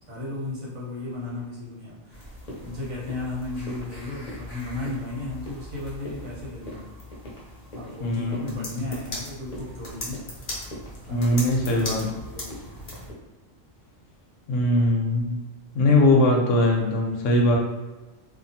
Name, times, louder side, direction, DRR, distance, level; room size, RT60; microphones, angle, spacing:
voice 1, 0.1-2.2 2.6-6.9 7.7-10.2 11.1-12.7, left 2 dB, 85° right, -5 dB, 1.3 m, -35 dB
sound 1, 2.1-13.1, left 1 dB, 40° left, 0.6 m, -38 dB
voice 2, 8.0-8.9 11.1-12.0 14.5-15.4 15.7-17.6, left 1 dB, 75° left, 0 dB, 0.9 m, -21 dB
2.8 x 2.3 x 2.7 m, 1.2 s
omnidirectional pair, 1.4 m